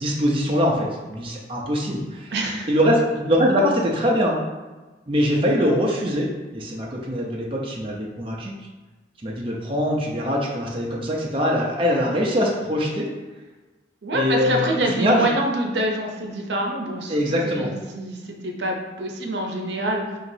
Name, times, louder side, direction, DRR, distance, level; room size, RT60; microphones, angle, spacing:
voice 1, 0.0-2.3 2.7-4.4 5.1-8.5 9.2-13.1 14.1-15.3 17.1-17.7, equal, 30° right, -2 dB, 0.6 m, -22 dB
voice 2, 2.3-2.7 14.0-20.2, right 1 dB, 80° right, 1 dB, 0.7 m, -26 dB
5.7 x 2.9 x 2.7 m, 1.2 s
head